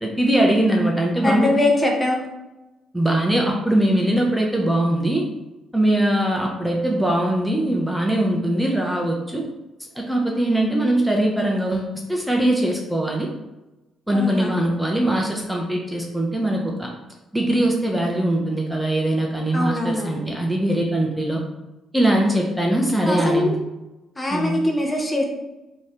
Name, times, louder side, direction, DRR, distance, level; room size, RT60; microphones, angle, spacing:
voice 1, 0.0-1.5 2.9-5.2 5.7-9.4 9.9-13.3 14.1-16.9 17.3-21.4 21.9-23.6 24.3-24.5, right 1 dB, 5° right, -1 dB, 0.9 m, -21 dB
voice 2, 1.2-2.2 14.1-14.5 19.5-20.3 23.0-23.5 24.2-25.2, left 2 dB, 25° left, 1 dB, 1.1 m, -22 dB
4.4 x 3.0 x 3.5 m, 1.0 s
figure-of-eight pair, 40°, 0 cm